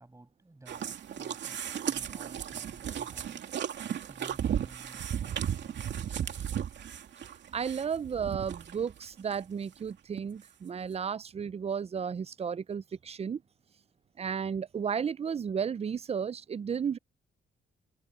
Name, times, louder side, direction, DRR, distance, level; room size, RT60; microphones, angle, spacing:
voice 1, 0.0-3.6 3.9-6.4, right 2 dB, 15° right, 7.1 m, -55 dB
sound 1, 0.7-9.0 9.3-9.4 9.9-10.0 10.2-10.3, right 9 dB, 65° right, 2.6 m, -35 dB
voice 2, 7.5-13.4 14.2-17.0, right 7 dB, 30° right, 0.5 m, -33 dB
cardioid pair, 90°, 20 cm